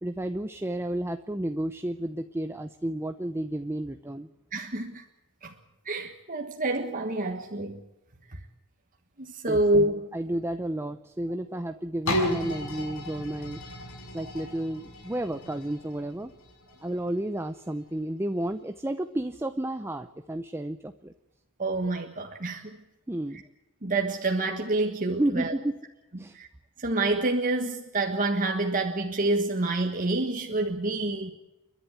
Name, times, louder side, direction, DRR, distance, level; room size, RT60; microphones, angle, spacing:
voice 1, 0.0-4.3 9.5-9.6 10.1-13.6 14.1-16.3 16.8-21.1 23.1-23.4 25.2-25.8 26.2-26.4, right 1 dB, 10° right, 8 dB, 0.6 m, -31 dB
voice 2, 4.5-5.0 5.4-5.5 5.8-7.8 8.3-8.4 9.2-10.1 21.6-22.8 23.8-25.5 26.3-26.5 26.8-31.3, right 2 dB, 40° right, 2 dB, 1.5 m, -27 dB
sound 1, 12.1-17.8 18.4-18.5, left 1 dB, 75° left, 6.1 m, -35 dB
30.0 x 11.5 x 8.2 m, 1.0 s
head